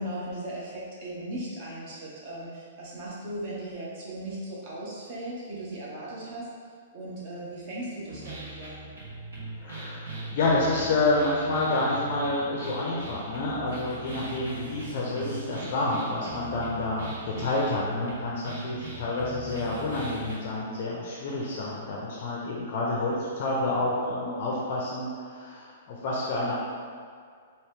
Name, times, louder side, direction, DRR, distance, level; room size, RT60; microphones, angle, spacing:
voice 1, 0.0-6.5 6.9-8.8, right 1 dB, 30° right, -6 dB, 0.8 m, -37 dB
sound 1, 8.1-20.3, right 2 dB, 80° right, 1.2 m, -40 dB
voice 2, 9.6-26.5, left 2 dB, 35° left, -4 dB, 0.5 m, -29 dB
2.9 x 2.7 x 3.4 m, 2.1 s
hypercardioid pair, 175°, 0 cm